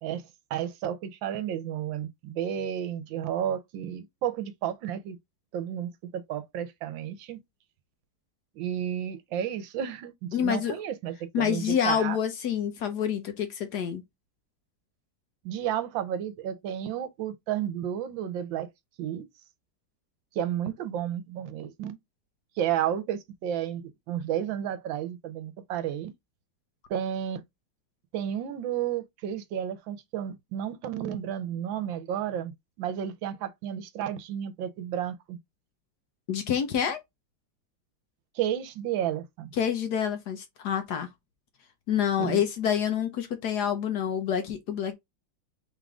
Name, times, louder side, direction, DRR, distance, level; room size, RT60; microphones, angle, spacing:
voice 1, 0.0-5.2 5.5-7.4 8.6-12.2 15.4-18.7 19.0-19.3 20.3-22.0 22.6-26.1 26.9-27.4 28.1-32.5 32.8-35.4 38.3-39.5 42.2-42.4, right 10 dB, 75° right, 1.4 m, -32 dB
voice 2, 10.3-10.8 11.3-14.0 36.3-37.0 39.6-41.1 41.9-44.9, left 8 dB, 65° left, 1.2 m, -27 dB
3.7 x 3.6 x 3.5 m
omnidirectional pair, 2.2 m